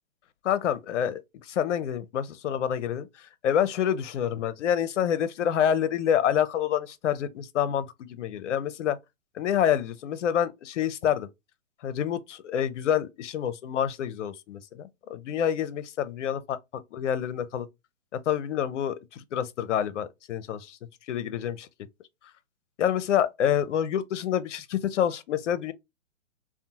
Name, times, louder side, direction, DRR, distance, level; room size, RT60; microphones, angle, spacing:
voice 1, 0.4-1.2 1.5-3.1 3.4-9.0 9.4-11.3 11.8-17.7 18.3-20.8 21.1-21.7 22.8-25.7, left 9 dB, 65° left, 0.5 m, -27 dB
2.6 x 2.1 x 2.8 m
figure-of-eight pair, 125°, 39 cm